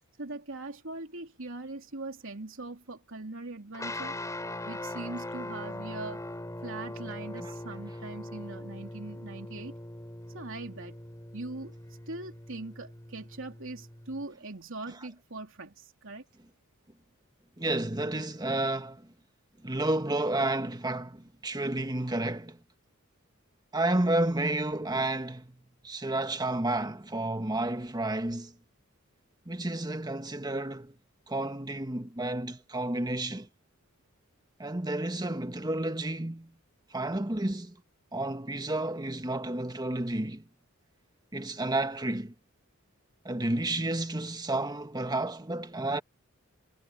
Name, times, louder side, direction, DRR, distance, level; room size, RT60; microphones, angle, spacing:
voice 1, 0.2-4.2 4.6-6.2 6.6-9.8 10.3-11.0 11.3-11.7 12.1-16.2, right 2 dB, 65° right, 3.3 m, -41 dB
sound 1, 3.7-14.2, left 1 dB, 15° left, 4.7 m, -41 dB
voice 2, 17.6-19.1 19.6-22.6 23.7-25.6 25.8-28.5 29.4-30.9 31.3-33.5 34.6-36.5 36.9-37.8 38.1-40.4 41.3-42.3 43.2-46.0, right 2 dB, 20° right, 1.5 m, -31 dB
head